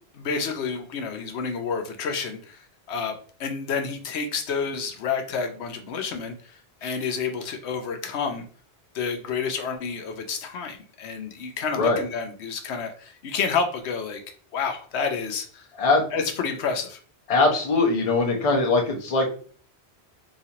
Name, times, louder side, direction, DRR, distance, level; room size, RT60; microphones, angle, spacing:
voice 1, 0.1-8.5 8.9-14.2 14.5-15.7 16.1-17.0, left 5 dB, 85° left, 5 dB, 0.9 m, -29 dB
voice 2, 17.3-19.3, left 3 dB, 35° left, 0 dB, 0.7 m, -21 dB
4.0 x 2.4 x 2.8 m, 0.43 s
omnidirectional pair, 1.1 m